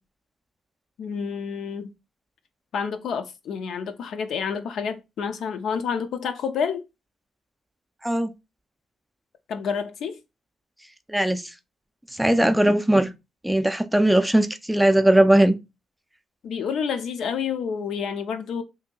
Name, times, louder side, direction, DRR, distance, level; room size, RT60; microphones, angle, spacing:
voice 1, 1.0-1.9 2.7-6.8 9.5-10.2 16.4-18.6, left 6 dB, 70° left, 0.5 m, -29 dB
voice 2, 11.1-11.4 12.1-13.1 13.4-15.6, right 1 dB, 5° right, 0.4 m, -19 dB
2.7 x 2.7 x 3.7 m
cardioid pair, 90°, 0 cm